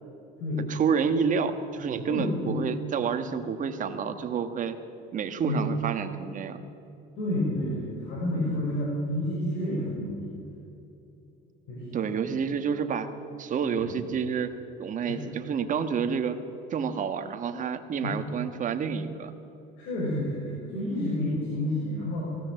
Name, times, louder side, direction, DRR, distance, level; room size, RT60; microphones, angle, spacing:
voice 1, 0.7-4.8 5.1-6.6 11.9-13.1 13.4-14.5 14.8-16.4 16.7-19.3, right 6 dB, 40° right, 8 dB, 1.6 m, -29 dB
voice 2, 2.1-2.6 5.4-5.7 7.2-10.4 11.7-12.3 13.7-13.9 15.0-15.3 18.0-18.3 19.8-22.3, left 1 dB, 70° left, -4 dB, 6.3 m, -30 dB
20.0 x 16.5 x 7.8 m, 3.0 s
cardioid pair, 115°, 21 cm